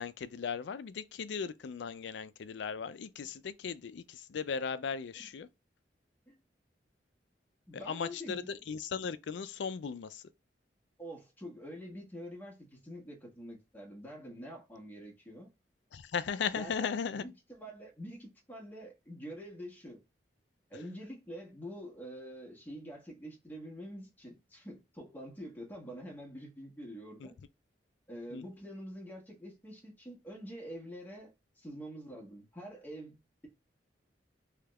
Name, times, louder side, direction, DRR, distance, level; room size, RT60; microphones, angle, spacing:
voice 1, 0.0-5.5 7.8-10.2 15.9-17.2 28.3-28.4, left 6 dB, 75° left, 0.4 m, -37 dB
voice 2, 7.7-8.5 11.0-15.5 16.5-20.0 20.7-27.3 28.1-33.5, equal, 10° left, 1.3 m, -46 dB
3.4 x 3.1 x 2.3 m
head